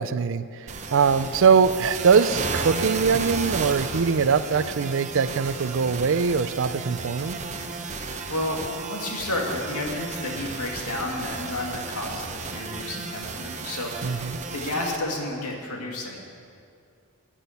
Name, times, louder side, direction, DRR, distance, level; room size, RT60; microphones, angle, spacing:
voice 1, 0.0-7.4 14.0-14.4, right 5 dB, 60° right, 13 dB, 0.5 m, -22 dB
sound 1, 0.7-15.0, right 4 dB, 30° right, 0.8 m, -33 dB
voice 2, 7.5-7.9 8.3-16.2, left 2 dB, 90° left, 0 dB, 2.2 m, -31 dB
11.0 x 8.9 x 8.0 m, 2.4 s
head